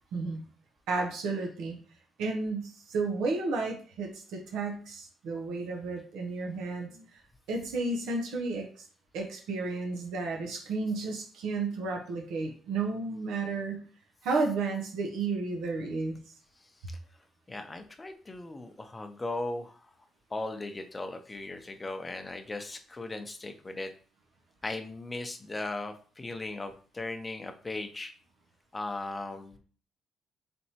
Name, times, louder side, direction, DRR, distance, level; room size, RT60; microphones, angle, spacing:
voice 1, 0.1-0.4 0.9-1.8 2.2-7.2 7.5-8.9 9.1-13.8 14.2-16.2, right 3 dB, 90° right, 2 dB, 0.7 m, -32 dB
voice 2, 16.6-17.0 17.5-20.0 20.3-23.9 24.6-28.1 28.7-29.6, left 2 dB, 20° left, 7 dB, 0.6 m, -38 dB
4.2 x 3.4 x 2.8 m, 0.41 s
cardioid pair, 90°, 0 cm